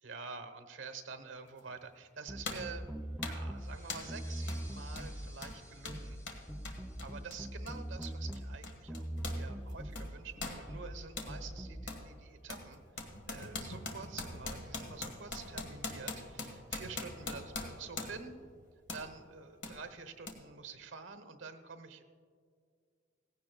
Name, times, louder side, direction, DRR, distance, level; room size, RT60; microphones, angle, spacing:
voice 1, 0.0-2.9 3.2-6.2 7.0-18.4 18.9-22.0, right 5 dB, 85° right, 8 dB, 1.1 m, -48 dB
Exercise ball bouncing fast, 1.6-1.7 2.4-2.8 3.2-3.5 3.9-4.2 4.5-4.6 4.9-9.4 9.7-11.3 11.9-12.1 12.5-18.3 18.9-19.1 19.6-19.8 20.3-20.4, left 3 dB, 65° left, 1.7 m, -42 dB
sound 1, 2.3-3.8 4.1-5.3 5.9-6.2 6.5-8.6 8.9-10.1 10.7-11.0 11.3-11.9, right 1 dB, ahead, 0.4 m, -41 dB
sound 2, 3.5-8.9, left 2 dB, 20° left, 1.4 m, -59 dB
17.5 x 15.5 x 2.3 m, 2.1 s
head